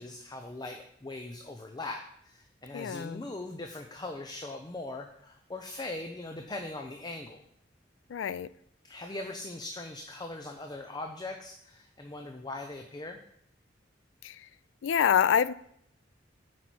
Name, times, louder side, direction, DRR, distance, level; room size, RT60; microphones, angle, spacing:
voice 1, 0.0-7.4 8.8-13.2, left 2 dB, 20° left, 0.6 m, -40 dB
voice 2, 2.7-3.2 8.1-8.5 14.2-14.4 14.8-15.5, left 8 dB, 85° left, 0.3 m, -26 dB
8.3 x 4.8 x 6.0 m
head